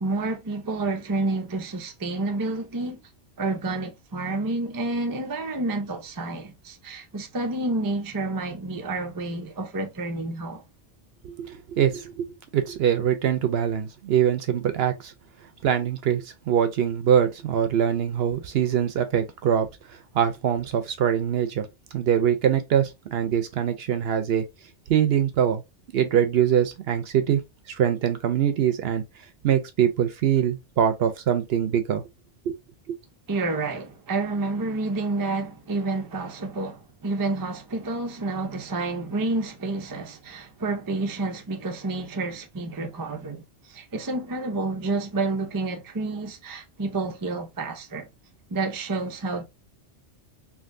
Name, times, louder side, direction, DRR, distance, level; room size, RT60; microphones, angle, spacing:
voice 1, 0.0-3.0 3.4-10.6 33.3-48.1 48.5-49.4, right 2 dB, 30° right, 0.4 m, -29 dB
voice 2, 11.2-12.3 12.5-15.1 15.6-21.7 21.9-24.4 24.9-25.6 25.9-27.4 27.7-29.0 29.4-32.0 32.5-32.6 32.9-33.0, right 9 dB, 65° right, 0.7 m, -23 dB
3.4 x 2.6 x 2.5 m
omnidirectional pair, 1.2 m